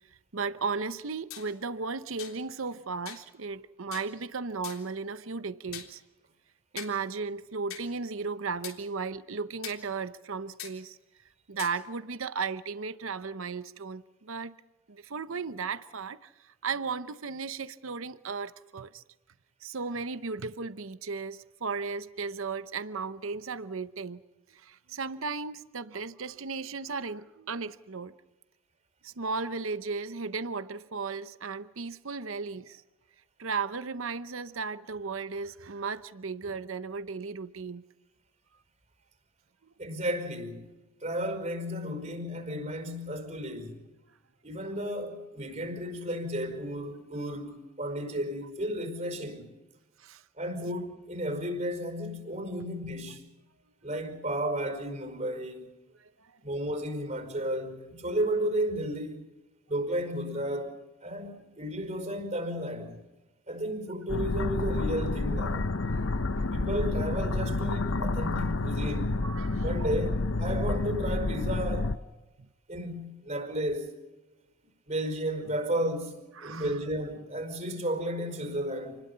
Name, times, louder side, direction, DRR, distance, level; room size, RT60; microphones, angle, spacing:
voice 1, 0.3-6.0 6.7-11.0 11.5-14.5 14.9-19.0 19.6-24.2 24.5-28.1 29.0-32.8 33.4-37.8 50.0-50.2 56.0-56.4 65.9-66.5 69.2-69.9 76.4-76.7, right 4 dB, 75° right, 0.8 m, -35 dB
sound 1, 1.3-1.5 2.2-2.4 3.1-3.3 3.9-4.1 4.6-4.9 5.7-5.9 6.8-7.0 7.7-7.8 8.6-8.8 9.6-9.8 10.6-10.7 11.6-11.7, left 10 dB, 90° left, 3.6 m, -41 dB
voice 2, 39.8-40.7 41.0-43.8 44.4-49.5 50.4-53.2 53.8-55.7 56.4-59.2 59.7-63.0 63.5-65.6 66.5-69.2 69.6-72.0 72.7-73.9 74.9-79.0, equal, 35° right, 5.1 m, -33 dB
sound 2, 64.1-72.0, left 2 dB, 70° left, 0.9 m, -29 dB
29.0 x 20.5 x 5.7 m
head